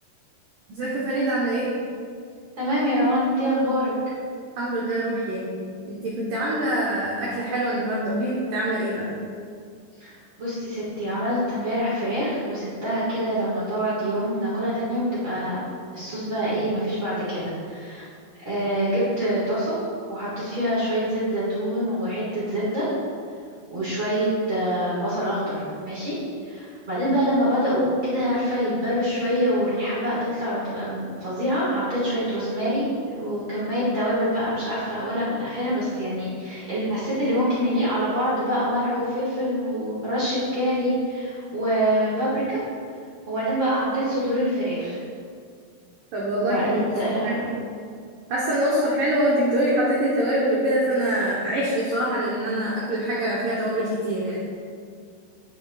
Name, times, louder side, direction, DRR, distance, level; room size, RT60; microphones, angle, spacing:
voice 1, 0.7-1.7 4.6-5.5 5.9-9.1 46.1-46.8 47.2-47.5 48.3-54.4, right 1 dB, 85° right, -6 dB, 1.9 m, -24 dB
voice 2, 2.5-3.9 10.0-15.6 15.9-18.1 18.4-19.8 20.1-22.9 23.7-26.2 26.4-42.6 43.3-45.0 46.4-47.4, equal, 55° right, -9 dB, 1.3 m, -25 dB
9.8 x 8.5 x 2.3 m, 2.2 s
omnidirectional pair, 5.2 m